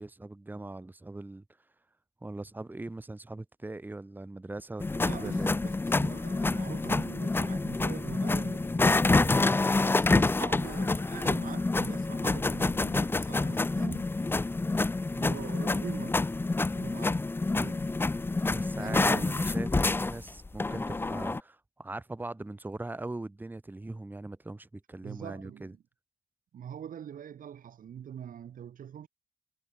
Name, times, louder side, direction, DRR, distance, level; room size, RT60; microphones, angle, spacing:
voice 1, 0.0-1.4 2.2-5.6 18.5-25.7, right 2 dB, 10° right, 2.9 m, -41 dB
sound 1, 4.8-21.4, left 3 dB, 15° left, 0.8 m, -28 dB
voice 2, 5.0-9.6 9.8-14.1 15.0-16.3 16.5-17.2 17.6-17.9 18.8-19.5 25.0-25.8 26.5-29.1, right 9 dB, 60° right, 3.4 m, -43 dB
wide cardioid pair, 165°, 15 cm